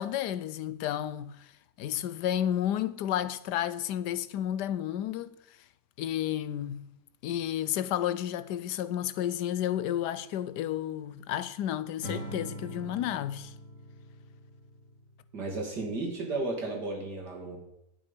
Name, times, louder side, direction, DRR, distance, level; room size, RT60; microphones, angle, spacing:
voice 1, 0.0-1.5 1.8-5.3 6.0-6.8 7.2-13.5, left 11 dB, 85° left, 1.3 m, -31 dB
Acoustic guitar / Strum, 12.0-15.3, right 1 dB, 50° right, 3.6 m, -43 dB
voice 2, 15.3-17.6, right 2 dB, 85° right, 3.2 m, -34 dB
11.0 x 8.8 x 5.2 m
omnidirectional pair, 1.7 m